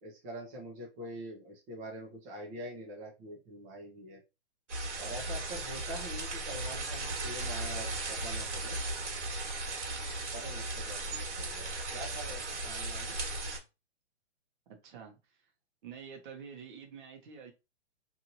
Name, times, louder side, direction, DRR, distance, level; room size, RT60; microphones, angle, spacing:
voice 1, 0.0-4.2 5.0-8.8 9.7-9.9 10.3-13.2, right 1 dB, 20° right, 0.7 m, -45 dB
sound 1, 4.7-13.6, right 2 dB, 80° right, 1.5 m, -36 dB
voice 2, 14.7-15.5 15.8-17.5, right 6 dB, 45° right, 1.0 m, -48 dB
3.0 x 2.6 x 2.7 m
hypercardioid pair, 145°, 35 cm